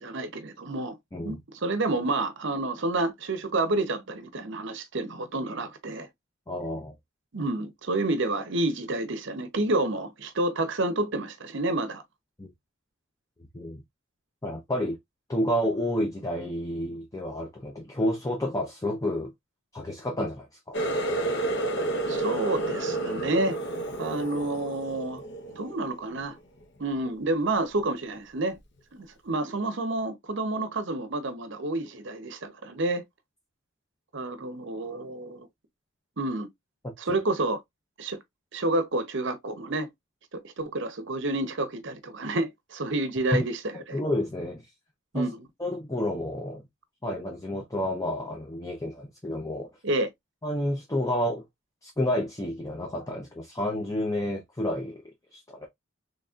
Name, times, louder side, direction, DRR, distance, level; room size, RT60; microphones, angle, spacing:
voice 1, 0.0-0.9 1.2-6.1 7.3-12.0 22.1-23.6 24.0-25.2 25.6-26.4 26.8-28.6 28.9-33.0 34.1-35.5 36.2-36.5 37.0-37.6 38.0-38.2 38.5-39.9 40.3-44.0 45.1-45.5 49.8-50.1, right 2 dB, 55° right, 0.7 m, -29 dB
voice 2, 6.5-6.9 12.4-12.5 13.5-13.8 14.4-15.0 15.3-19.3 19.7-20.8 37.1-37.2 43.3-43.4 43.9-44.6 45.1-45.3 45.6-46.6 47.0-49.7 50.4-51.4 51.8-55.0 55.3-55.7, left 1 dB, 15° left, 0.6 m, -30 dB
Water tap faucet, 20.7-26.2 26.6-27.1 27.5-27.8 28.6-28.7, right 2 dB, 55° left, 0.8 m, -31 dB
4.0 x 3.2 x 2.3 m
head